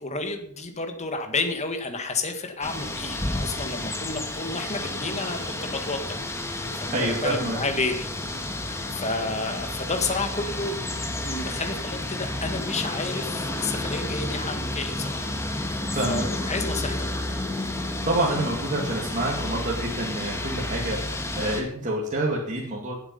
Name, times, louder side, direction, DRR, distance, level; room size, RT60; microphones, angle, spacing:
voice 1, 0.0-6.0 6.7-8.1 8.6-10.7 11.2-15.3 16.1-17.1, left 3 dB, 30° left, 5 dB, 2.0 m, -31 dB
sound 1, 2.6-21.6, left 1 dB, 15° left, 1.7 m, -31 dB
voice 2, 6.9-7.6 8.6-9.4 15.9-16.3 17.7-23.0, right 1 dB, 35° right, -3 dB, 2.5 m, -28 dB
17.5 x 8.3 x 5.6 m, 0.66 s
head